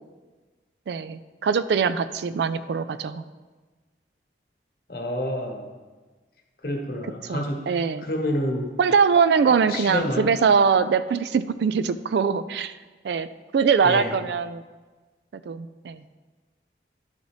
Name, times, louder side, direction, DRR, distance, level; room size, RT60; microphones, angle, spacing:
voice 1, 0.9-3.2 7.3-8.1 8.8-12.7 13.0-13.3 13.5-14.6 15.3-16.0, right 5 dB, 75° right, 14 dB, 0.3 m, -22 dB
voice 2, 4.9-5.7 6.6-7.7 8.0-8.7 9.4-10.3 13.8-14.1, left 1 dB, 55° left, 1 dB, 1.2 m, -28 dB
11.0 x 4.0 x 4.8 m, 1.3 s
head